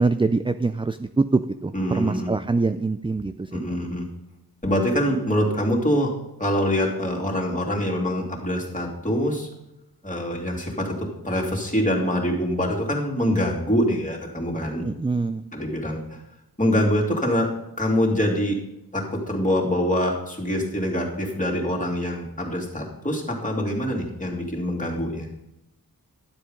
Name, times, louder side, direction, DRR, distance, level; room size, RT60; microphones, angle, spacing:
voice 1, 0.0-3.6 14.8-15.4, right 3 dB, 15° right, 10 dB, 0.4 m, -24 dB
voice 2, 1.7-2.3 3.5-4.1 4.6-6.1 6.4-9.5 10.0-14.8 15.5-16.2 16.6-17.5 17.8-18.6 18.9-25.3, equal, 20° left, -1 dB, 2.9 m, -24 dB
12.0 x 7.8 x 5.1 m, 0.89 s
wide cardioid pair, 85°, 37 cm